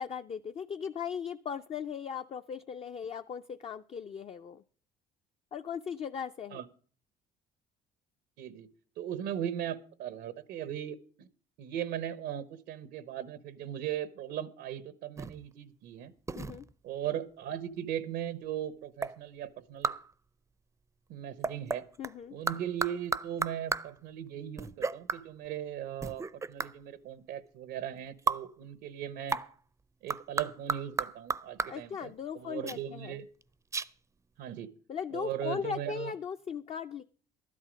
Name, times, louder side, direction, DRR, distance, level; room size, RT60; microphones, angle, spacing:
voice 1, 0.0-4.6 5.5-6.6 16.4-16.7 22.0-22.4 31.7-33.2 34.9-37.0, left 7 dB, 35° left, 8 dB, 0.5 m, -38 dB
voice 2, 8.4-8.7 9.0-11.3 11.6-16.1 16.8-19.9 21.1-21.8 22.3-29.4 30.0-33.3 34.4-34.7 35.1-36.1, right 10 dB, 90° right, 15 dB, 0.9 m, -38 dB
sound 1, 15.2-15.5 16.3-16.7 19.0-19.2 19.8-20.1 21.4-22.1 22.5-24.0 24.6-25.2 26.0-26.8 28.3-28.5 29.3-29.6 30.1-31.8 32.7-32.8 33.4-33.5 33.7-33.9, right 4 dB, 15° right, 0.5 m, -33 dB
12.0 x 11.0 x 5.1 m, 0.42 s
cardioid pair, 110°, 17 cm